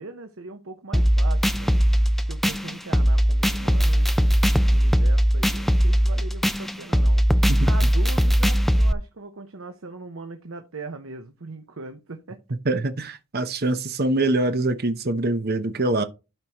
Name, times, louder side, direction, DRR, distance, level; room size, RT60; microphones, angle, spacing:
voice 1, 0.0-7.2 7.6-12.4, right 3 dB, 75° right, 0.9 m, -40 dB
sound 1, 0.9-8.9, equal, ahead, 0.3 m, -19 dB
voice 2, 12.6-16.0, right 2 dB, 50° right, 0.9 m, -24 dB
12.0 x 4.8 x 3.0 m
head